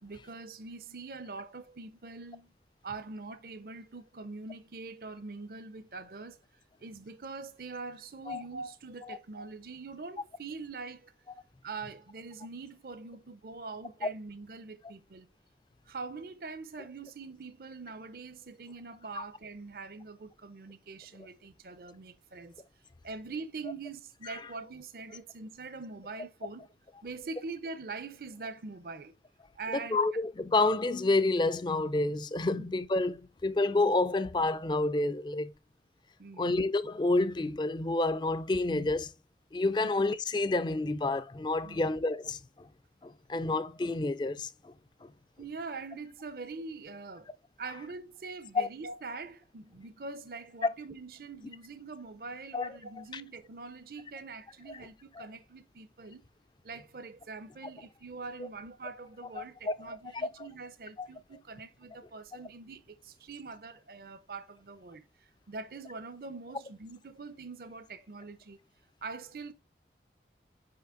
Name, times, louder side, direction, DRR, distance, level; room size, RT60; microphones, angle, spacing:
voice 1, 0.0-2.5 2.8-6.4 6.8-11.1 11.6-15.3 15.9-22.6 23.0-26.7 27.0-29.1 29.5-30.0 32.6-32.7 36.2-36.6 39.8-39.9 41.6-41.9 45.4-47.3 47.6-56.2 56.6-68.6 69.0-69.5, right 4 dB, 55° right, 0.6 m, -43 dB
voice 2, 29.7-35.5 36.4-39.1 39.5-42.7 43.0-44.7 48.5-48.7 52.5-52.7 53.1-53.2 59.4-59.9 61.0-61.1, left 2 dB, 25° left, 0.4 m, -29 dB
5.8 x 5.2 x 3.7 m
head